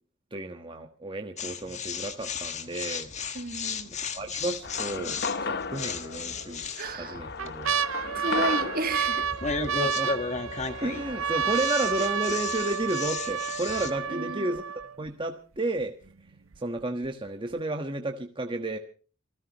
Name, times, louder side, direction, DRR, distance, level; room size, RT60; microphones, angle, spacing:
voice 1, 0.3-3.1 3.8-7.8 9.6-10.1 10.8-14.6 15.0-15.9 16.6-18.8, right 2 dB, 25° right, 1.4 m, -32 dB
sound 1, 1.4-13.9, left 5 dB, 35° left, 1.6 m, -35 dB
voice 2, 3.3-3.9 6.8-7.2 8.1-9.3 14.1-14.5, right 2 dB, 45° right, 2.0 m, -32 dB
sound 2, 4.2-4.7 5.1-5.2 6.2-6.7 7.1-15.1 15.8-15.9 16.1-16.6 17.0-17.1, right 7 dB, 90° right, 0.7 m, -30 dB
sound 3, 4.6-11.5, left 4 dB, 55° left, 1.0 m, -36 dB
27.5 x 16.0 x 3.1 m
head